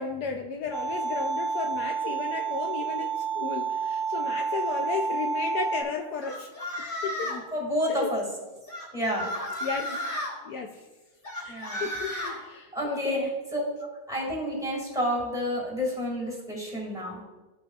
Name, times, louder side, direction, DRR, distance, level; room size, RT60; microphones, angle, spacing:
voice 1, 0.0-6.5 7.0-7.3 7.9-8.1 9.6-10.1 10.4-10.8 11.4-13.3, left 5 dB, 75° left, 3 dB, 0.9 m, -34 dB
sound 1, 0.7-5.8, right 5 dB, 45° right, 1.3 m, -29 dB
sound 2, 6.2-7.5 8.7-10.3 11.2-12.4, left 1 dB, 35° left, 2.2 m, -33 dB
voice 2, 7.2-8.2 8.9-9.3 9.6-9.9 11.5-11.9 12.2-12.4 12.7-13.2 13.5-13.6 14.1-17.2, equal, ahead, -4 dB, 2.0 m, -30 dB
13.0 x 5.2 x 2.4 m, 1.2 s
omnidirectional pair, 2.2 m